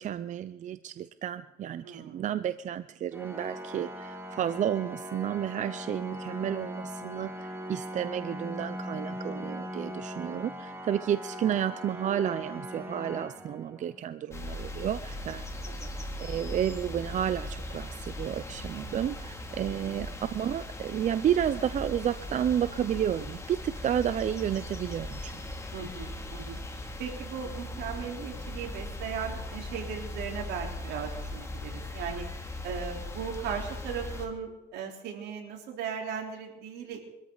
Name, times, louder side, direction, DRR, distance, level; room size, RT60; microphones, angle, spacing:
voice 1, 0.0-15.5 16.2-25.4, right 10 dB, 45° right, 13 dB, 0.6 m, -31 dB
voice 2, 1.8-2.3 10.2-10.7 15.6-15.9 19.7-20.1 25.7-26.6 27.0-32.3 32.6-37.0, right 7 dB, 80° right, 1 dB, 3.9 m, -38 dB
Organ, 3.1-14.1, equal, 10° right, 2.6 m, -40 dB
sound 1, 14.3-34.3, left 1 dB, 15° left, 2.6 m, -39 dB
24.0 x 13.5 x 4.0 m, 0.91 s
cardioid pair, 110°, 17 cm